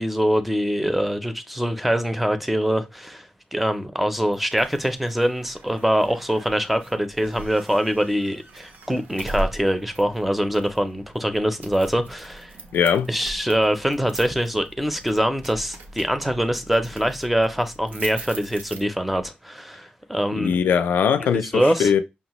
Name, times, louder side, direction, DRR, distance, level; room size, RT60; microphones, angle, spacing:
voice 1, 0.0-12.5 13.1-20.6 21.3-21.9, equal, 5° right, 0.4 m, -24 dB
sound 1, 4.3-19.3, right 2 dB, 75° right, 0.7 m, -40 dB
voice 2, 12.7-13.1 20.4-22.0, left 7 dB, 80° left, 0.4 m, -20 dB
5.5 x 2.0 x 2.9 m
wide cardioid pair, 160°, 3 cm